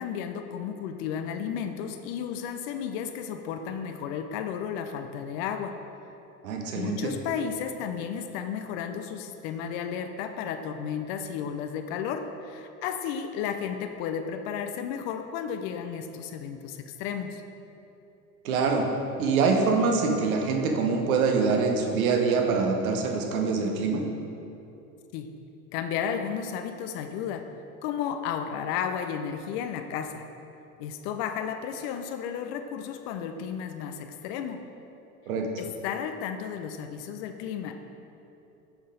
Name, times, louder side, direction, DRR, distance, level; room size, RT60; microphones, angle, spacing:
voice 1, 0.0-5.8 6.7-17.4 25.1-25.4 25.7-27.4 27.8-30.2 30.8-34.6 35.6-37.8, left 7 dB, 45° left, 7 dB, 0.5 m, -33 dB
voice 2, 6.4-7.1 18.4-18.9 19.2-24.1 35.3-35.5, right 4 dB, 65° right, 3 dB, 1.0 m, -25 dB
7.1 x 5.5 x 3.8 m, 2.8 s
figure-of-eight pair, 80°, 46 cm